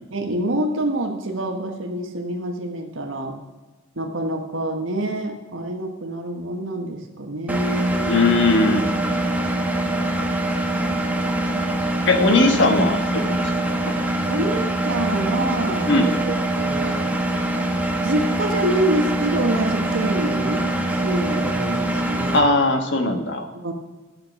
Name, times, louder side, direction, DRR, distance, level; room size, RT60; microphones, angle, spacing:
voice 1, 0.1-3.3 4.0-8.1 14.3-17.1 17.9-20.7 21.0-22.5 23.5-23.7, right 1 dB, 75° right, 3 dB, 1.3 m, -26 dB
Engine, 7.5-22.4, right 1 dB, 10° right, 1.1 m, -23 dB
voice 2, 8.1-8.9 12.0-13.4 13.8-13.9 15.9-16.1 22.3-23.5, left 2 dB, 65° left, 5 dB, 1.4 m, -19 dB
11.5 x 6.8 x 6.0 m, 1.2 s
head